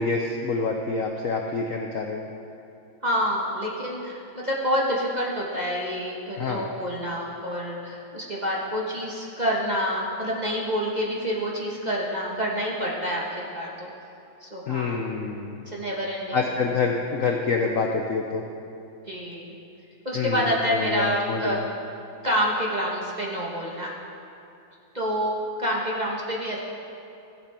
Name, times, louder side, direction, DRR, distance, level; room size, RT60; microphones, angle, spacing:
voice 1, 0.0-2.3 6.4-6.6 14.7-15.6 16.3-18.4 20.1-21.6, left 4 dB, 65° left, 2 dB, 0.8 m, -27 dB
voice 2, 3.0-13.9 14.4-15.0 15.7-16.4 19.1-19.6 20.0-21.6 22.2-23.9 24.9-25.3 25.6-26.6, equal, 25° right, -4 dB, 1.1 m, -27 dB
16.0 x 7.6 x 4.4 m, 2.7 s
omnidirectional pair, 2.0 m